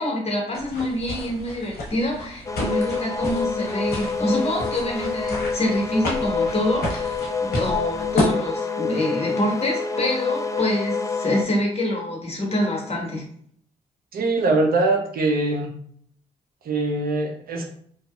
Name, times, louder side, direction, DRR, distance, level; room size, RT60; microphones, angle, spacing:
voice 1, 0.0-13.2, left 1 dB, 40° left, -1 dB, 1.2 m, -26 dB
sound 1, 0.5-8.2, left 1 dB, 70° left, 0.9 m, -31 dB
sound 2, 2.5-11.4, left 4 dB, 20° left, 0.3 m, -27 dB
voice 2, 14.1-15.7 16.6-17.6, right 2 dB, 65° right, 1 dB, 0.6 m, -22 dB
2.7 x 2.3 x 2.4 m, 0.62 s
hypercardioid pair, 45°, 16 cm